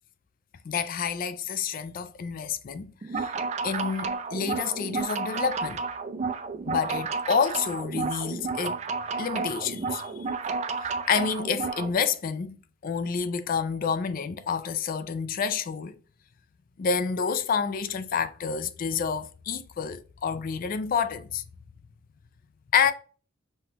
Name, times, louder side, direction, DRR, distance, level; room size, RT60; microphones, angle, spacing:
voice 1, 0.6-3.3 3.6-5.8 6.7-8.8 9.2-10.1 10.8-12.6 12.8-16.0 16.8-21.4 22.7-22.9, left 6 dB, 45° left, 0.4 m, -28 dB
sound 1, 3.0-11.9, right 4 dB, 35° right, 0.3 m, -31 dB
5.5 x 2.9 x 2.9 m
head